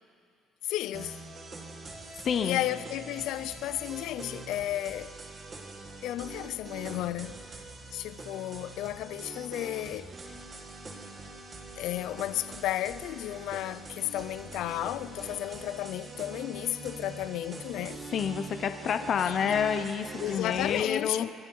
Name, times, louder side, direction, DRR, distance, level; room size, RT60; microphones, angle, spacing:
voice 1, 0.6-1.2 2.4-5.1 6.0-7.6 7.9-10.1 11.8-18.0 19.1-19.6 20.2-21.3, left 14 dB, 75° left, 0.5 m, -33 dB
sound 1, 0.9-20.8, right 3 dB, 25° right, 1.8 m, -44 dB
voice 2, 2.2-2.6 18.1-21.3, left 7 dB, 45° left, 0.8 m, -28 dB
25.0 x 21.5 x 4.8 m
cardioid pair, 145°, 0 cm